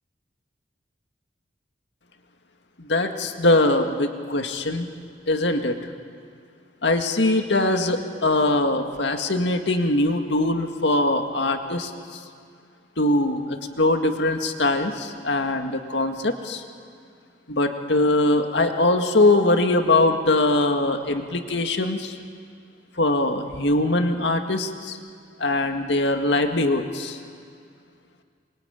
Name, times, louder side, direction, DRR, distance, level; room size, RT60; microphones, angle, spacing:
voice 1, 2.8-4.9 5.3-5.8 6.8-12.2 13.0-16.6 17.5-22.2 23.0-25.0 25.4-27.2, left 2 dB, 75° left, 5 dB, 2.0 m, -22 dB
27.0 x 23.0 x 9.2 m, 2.2 s
head